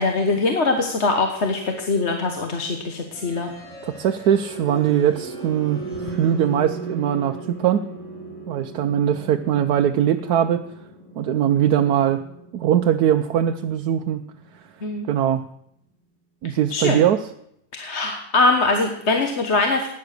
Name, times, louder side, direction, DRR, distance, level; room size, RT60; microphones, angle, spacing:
voice 1, 0.0-3.5 14.8-15.1 16.7-17.0 17.7-19.9, left 3 dB, 45° left, 4 dB, 1.4 m, -22 dB
sound 1, 3.1-15.0, right 3 dB, 5° left, 5.6 m, -38 dB
voice 2, 3.8-7.8 8.5-10.6 11.2-12.2 12.5-14.2 15.0-15.4 16.4-17.3, right 10 dB, 80° right, 6 dB, 1.2 m, -21 dB
16.5 x 9.8 x 6.6 m, 0.76 s
omnidirectional pair, 1.6 m